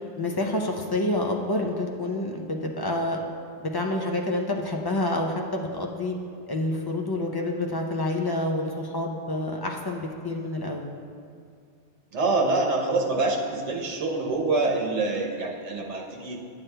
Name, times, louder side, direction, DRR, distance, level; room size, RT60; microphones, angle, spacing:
voice 1, 0.2-3.2 3.6-6.1 6.5-10.9, left 1 dB, 40° left, 1 dB, 0.3 m, -28 dB
voice 2, 12.1-16.4, right 3 dB, 85° right, -1 dB, 1.2 m, -26 dB
10.5 x 7.5 x 2.2 m, 2.2 s
omnidirectional pair, 1.2 m